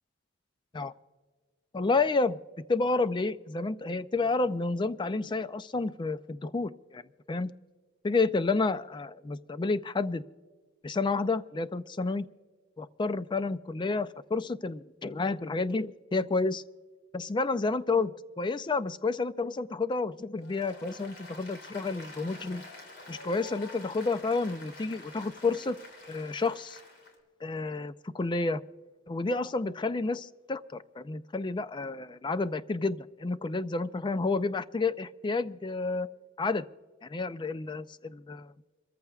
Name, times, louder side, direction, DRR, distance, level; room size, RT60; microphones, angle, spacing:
voice 1, 1.7-2.4 2.7-7.0 7.3-7.5 8.0-10.2 10.8-12.3 12.8-16.6 17.1-22.7 23.1-25.8 26.1-26.8 27.4-28.6 29.1-36.1 36.4-36.6 37.0-38.5, left 3 dB, 25° left, 14 dB, 0.4 m, -30 dB
Applause, 20.4-27.1, left 2 dB, 60° left, 3.0 m, -48 dB
26.5 x 14.5 x 2.3 m, 1.5 s
head